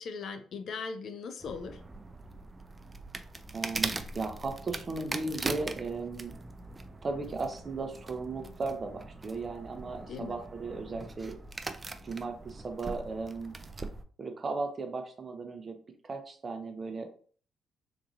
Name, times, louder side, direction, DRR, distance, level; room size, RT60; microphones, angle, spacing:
voice 1, 0.0-1.8 10.1-10.4, left 5 dB, 60° left, 8 dB, 0.5 m, -39 dB
sound 1, 1.4-14.0, right 2 dB, 20° right, 0.4 m, -41 dB
voice 2, 3.5-6.3 7.0-11.4 12.0-13.6 14.2-15.8 16.0-17.2, right 3 dB, 35° right, 5 dB, 0.7 m, -36 dB
3.9 x 2.8 x 2.4 m, 0.43 s
cardioid pair, 90°, 0 cm